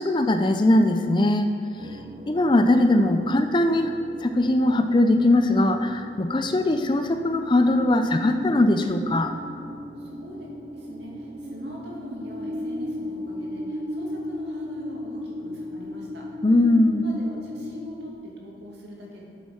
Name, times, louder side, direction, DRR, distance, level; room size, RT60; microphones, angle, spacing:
voice 1, 0.0-1.5 1.9-2.0 2.3-3.9 4.2-9.3 16.4-17.1, left 1 dB, 25° left, 8 dB, 0.4 m, -20 dB
sound 1, 1.8-18.1, left 1 dB, 30° right, 0.5 m, -37 dB
voice 2, 10.0-16.3 17.0-19.2, equal, 70° right, -3 dB, 2.4 m, -42 dB
8.5 x 8.1 x 6.2 m, 2.3 s
head